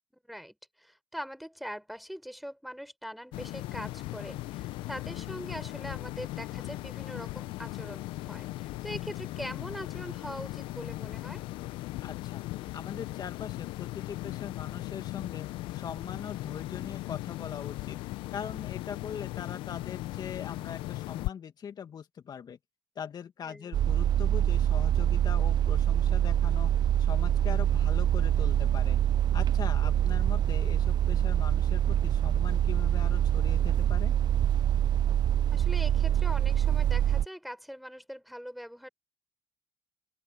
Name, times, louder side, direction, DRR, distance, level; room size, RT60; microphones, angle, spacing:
voice 1, 0.1-11.4 23.4-23.7 35.5-38.9, equal, ahead, 4.8 m, -42 dB
sound 1, 3.3-21.3, left 18 dB, 75° left, 0.8 m, -38 dB
voice 2, 12.0-12.4 12.7-15.5 15.7-18.0 18.3-22.6 23.0-26.7 27.0-29.0 29.3-34.1, left 8 dB, 50° left, 2.3 m, -41 dB
sound 2, 23.7-37.3, right 10 dB, 55° right, 0.7 m, -25 dB
open air
hypercardioid pair, 55°, 9 cm